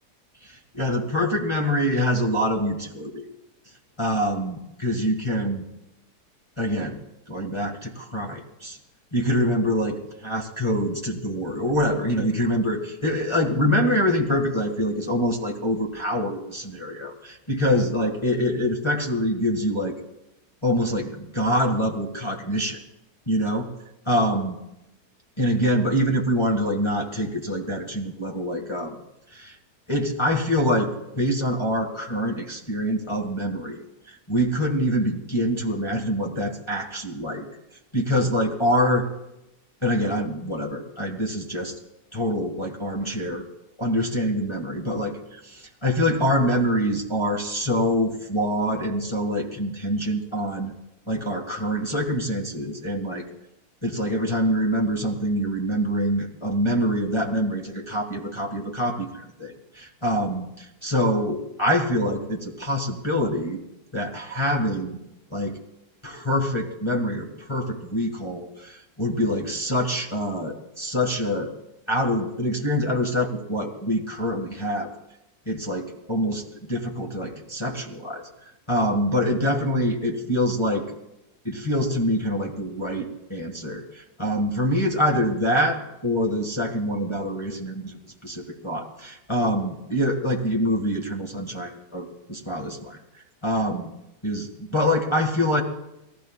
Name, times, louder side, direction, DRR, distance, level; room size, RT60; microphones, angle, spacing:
voice 1, 0.4-3.2 4.0-5.6 6.6-7.0 7.3-8.8 9.1-10.0 10.2-20.0 20.6-22.8 23.3-23.7 24.1-24.6 25.4-29.0 29.3-29.6 29.9-33.8 34.1-37.5 37.9-39.1 39.8-41.8 42.1-43.4 43.8-50.7 51.1-53.2 53.8-63.6 63.9-65.0 65.3-65.5 66.0-71.5 71.9-74.9 75.5-76.4 76.7-78.3 78.7-80.8 81.4-85.8 86.0-93.0 93.4-93.9 94.2-95.6, equal, 15° left, 1 dB, 1.9 m, -25 dB
28.5 x 20.0 x 2.5 m, 0.89 s
omnidirectional pair, 1.8 m